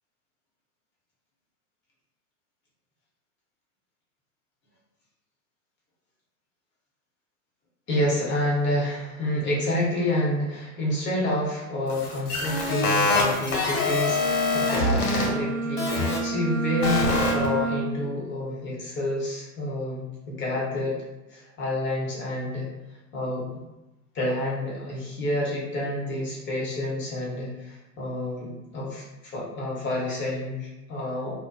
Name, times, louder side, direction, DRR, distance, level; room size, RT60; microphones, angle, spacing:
voice 1, 7.9-21.0 21.3-22.7 23.1-23.4 24.1-31.3, left 1 dB, 25° left, -5 dB, 0.8 m, -28 dB
sound 1, 11.9-15.3 15.8-16.2 16.8-17.5, left 3 dB, 85° left, 1.3 m, -25 dB
Bowed string instrument, 14.0-18.1, right 3 dB, 30° right, 0.7 m, -30 dB
2.5 x 2.1 x 2.3 m, 1.0 s
hypercardioid pair, 120°, 43 cm